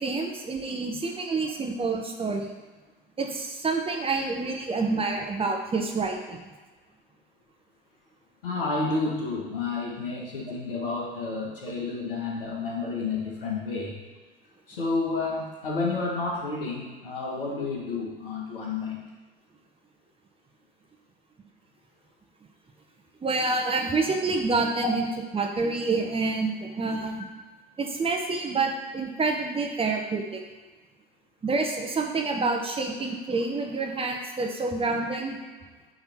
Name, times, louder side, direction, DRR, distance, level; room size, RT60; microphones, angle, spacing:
voice 1, 0.0-2.5 3.2-6.5 10.5-10.6 23.2-25.1 25.3-27.2 27.8-30.4 31.4-35.4, right 3 dB, 20° right, 2 dB, 1.0 m, -28 dB
voice 2, 8.4-14.0 14.7-19.0, left 3 dB, 70° left, -2 dB, 1.6 m, -30 dB
9.9 x 3.4 x 4.5 m, 1.3 s
figure-of-eight pair, 65°, 29 cm